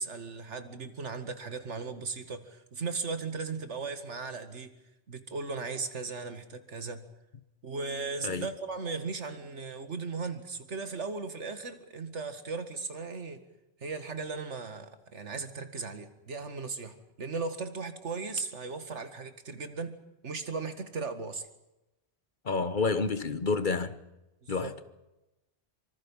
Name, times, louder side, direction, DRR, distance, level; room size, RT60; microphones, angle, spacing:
voice 1, 0.0-4.7 5.1-7.0 7.6-13.4 13.8-20.0 20.2-21.5 24.4-24.8, right 4 dB, 90° right, 2.1 m, -37 dB
voice 2, 22.4-24.0 24.5-24.7, left 4 dB, 45° left, 1.2 m, -29 dB
25.0 x 25.0 x 5.6 m
omnidirectional pair, 1.2 m